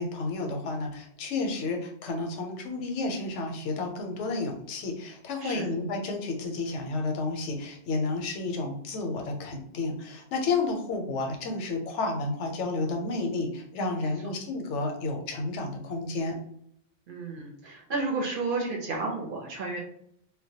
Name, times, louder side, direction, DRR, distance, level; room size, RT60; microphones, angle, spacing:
voice 1, 0.0-16.4, left 3 dB, 85° left, 3 dB, 0.9 m, -31 dB
voice 2, 17.1-19.8, right 3 dB, 60° right, -1 dB, 0.7 m, -32 dB
2.2 x 2.1 x 2.7 m, 0.70 s
omnidirectional pair, 1.2 m